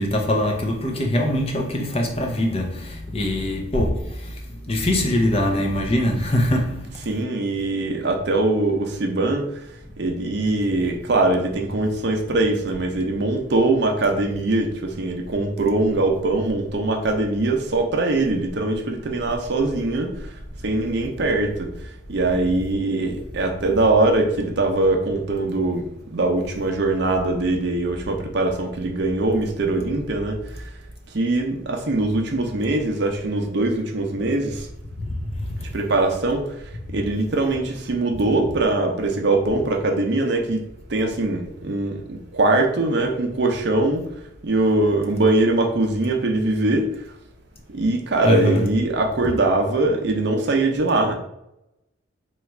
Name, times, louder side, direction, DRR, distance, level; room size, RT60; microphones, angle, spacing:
voice 1, 0.0-7.1 35.0-35.7 48.2-48.6, left 1 dB, 30° left, 0.6 m, -23 dB
voice 2, 7.1-9.5 10.0-20.1 20.6-21.7 22.1-30.4 31.1-34.6 35.7-36.5 36.9-40.6 40.9-44.1 44.4-46.9 47.7-51.2, right 2 dB, 55° right, 0.6 m, -22 dB
3.1 x 2.4 x 4.3 m
head